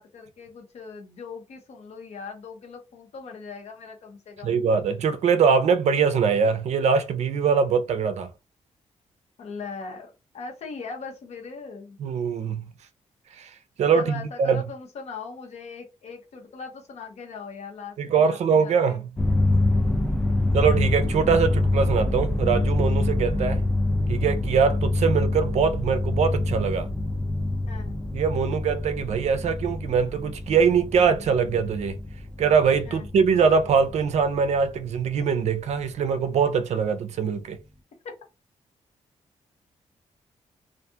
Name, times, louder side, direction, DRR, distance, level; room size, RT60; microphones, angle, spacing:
voice 1, 0.0-4.7 9.4-12.0 13.9-19.0 27.7-28.0 32.9-33.1, left 4 dB, 65° left, 0.9 m, -40 dB
voice 2, 4.4-8.3 12.0-12.7 13.4-13.5 13.8-14.6 18.0-19.0 20.5-23.6 24.1-26.9 28.1-32.0 32.4-37.6, right 6 dB, 70° right, 0.4 m, -22 dB
sound 1, 19.2-35.2, left 2 dB, 5° left, 0.4 m, -26 dB
2.4 x 2.2 x 2.7 m
wide cardioid pair, 125°, 12 cm